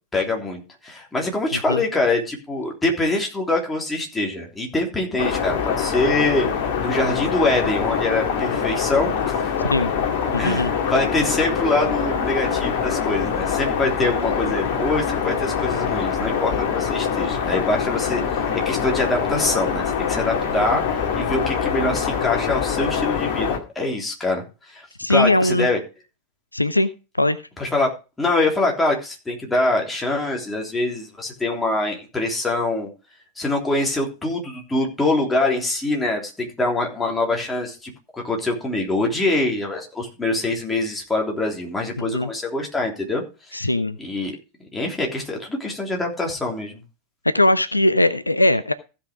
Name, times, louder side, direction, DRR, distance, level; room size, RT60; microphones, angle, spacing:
voice 1, 0.1-6.5 6.8-9.5 10.3-18.2 18.6-20.8 21.1-24.4 24.7-25.8 27.6-27.9 28.2-32.9 33.4-43.7 44.0-44.3 44.7-46.8, left 2 dB, 10° left, 0 dB, 3.3 m, -24 dB
sound 1, 5.2-23.6, left 7 dB, 50° left, 2.1 m, -24 dB
voice 2, 10.3-10.7 25.0-25.7 26.5-26.9 27.2-27.4 42.0-42.3 43.5-44.0 47.2-48.7, left 1 dB, 85° left, 14 dB, 0.6 m, -20 dB
15.5 x 5.8 x 5.0 m, 0.31 s
figure-of-eight pair, 90°, 0 cm